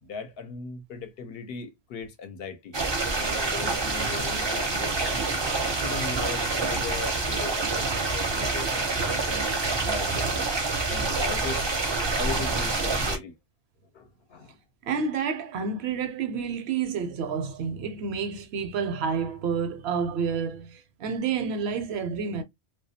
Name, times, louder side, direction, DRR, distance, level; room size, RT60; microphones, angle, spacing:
voice 1, 0.0-2.7 3.2-5.4 5.8-9.5 9.8-10.4 10.9-11.6 12.2-13.4 13.9-14.6, left 5 dB, 70° left, 0.8 m, -38 dB
sound 1, 2.7-13.2, right 3 dB, 35° right, 0.5 m, -27 dB
voice 2, 14.8-22.4, right 6 dB, 75° right, 0.8 m, -29 dB
2.3 x 2.2 x 2.6 m
omnidirectional pair, 1.1 m